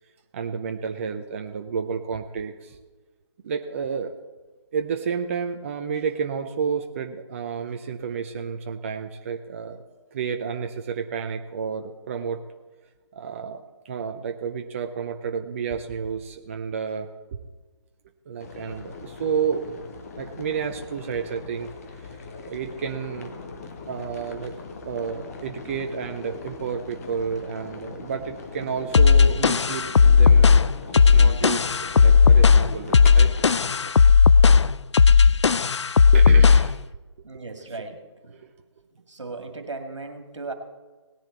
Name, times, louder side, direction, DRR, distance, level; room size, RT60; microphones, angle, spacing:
voice 1, 0.3-2.8 3.4-4.1 4.7-9.8 10.1-12.4 13.1-17.4 18.3-19.6 20.2-21.7 22.0-22.2 22.5-23.3 23.9-24.6 24.8-33.3 36.1-36.9 37.3-37.4 38.3-38.5, right 6 dB, 25° right, 6 dB, 0.6 m, -31 dB
sound 1, 18.4-33.9, left 4 dB, 30° left, 1.3 m, -40 dB
sound 2, 28.9-36.8, left 5 dB, 70° left, 0.4 m, -15 dB
voice 2, 37.2-38.4 39.1-40.5, right 3 dB, 75° right, 4 dB, 2.2 m, -37 dB
18.0 x 10.5 x 4.1 m, 1.3 s
figure-of-eight pair, 145°, 15 cm